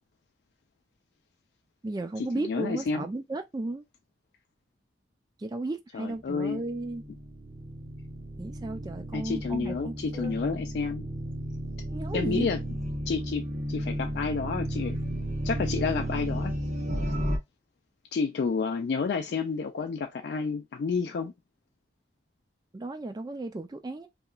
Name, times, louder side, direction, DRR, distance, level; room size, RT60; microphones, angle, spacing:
voice 1, 1.8-3.8 5.4-7.0 8.4-10.3 11.9-12.5 22.7-24.1, right 2 dB, 20° right, 0.3 m, -34 dB
voice 2, 2.4-3.1 5.9-6.6 9.1-11.1 12.1-12.6 13.1-15.0 15.4-16.6 18.1-21.3, left 5 dB, 60° left, 0.3 m, -30 dB
sound 1, 6.5-17.4, equal, 40° right, 0.8 m, -33 dB
2.9 x 2.4 x 2.2 m
head